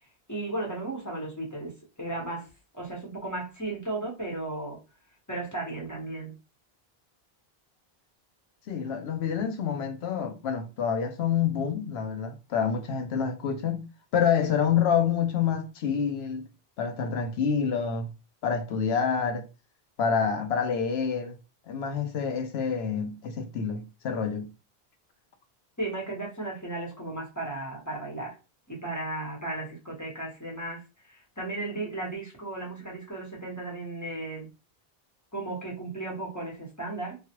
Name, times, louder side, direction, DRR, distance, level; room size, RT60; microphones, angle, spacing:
voice 1, 0.3-2.5 2.7-4.8 5.3-6.3 25.8-28.3 28.7-30.8 31.1-34.5 35.3-37.2, right 2 dB, 20° left, 1.0 m, -35 dB
voice 2, 8.7-13.9 14.1-16.4 16.8-18.1 18.4-19.4 20.0-21.4 21.7-24.5, left 7 dB, 85° left, 0.9 m, -27 dB
3.2 x 2.3 x 2.9 m
omnidirectional pair, 1.0 m